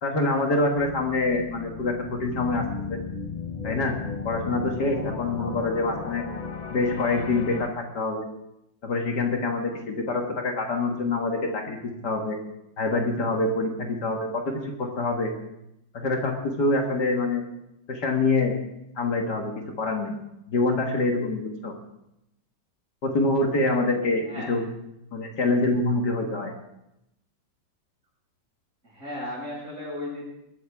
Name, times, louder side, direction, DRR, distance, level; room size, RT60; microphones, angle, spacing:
voice 1, 0.0-2.6 2.9-3.0 3.6-4.0 4.2-6.3 6.7-7.7 7.9-8.3 8.8-11.8 12.0-12.4 12.8-15.3 15.9-17.4 17.9-18.5 19.0-20.2 20.5-21.7 23.0-24.6 25.1-26.5, left 2 dB, 60° left, 2 dB, 2.2 m, -25 dB
sound 1, 0.8-7.7, left 5 dB, 75° left, 0.4 m, -35 dB
voice 2, 24.3-24.6 28.8-30.2, left 1 dB, 40° right, -4 dB, 7.1 m, -35 dB
21.5 x 13.0 x 3.6 m, 0.84 s
omnidirectional pair, 2.0 m